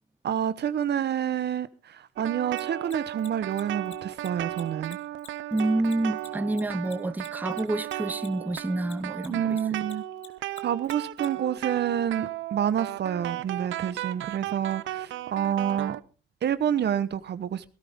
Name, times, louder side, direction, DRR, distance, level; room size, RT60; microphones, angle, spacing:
voice 1, 0.2-5.0 9.3-10.0 10.6-16.0 16.4-17.6, right 9 dB, 60° right, 1.0 m, -28 dB
sound 1, 2.2-16.0, right 14 dB, 75° right, 0.7 m, -35 dB
Mechanisms, 2.5-9.3 9.5-11.3, left 11 dB, 75° left, 2.0 m, -47 dB
voice 2, 5.5-9.6, right 2 dB, 10° right, 0.8 m, -28 dB
17.5 x 13.5 x 3.6 m
cardioid pair, 90°, 20 cm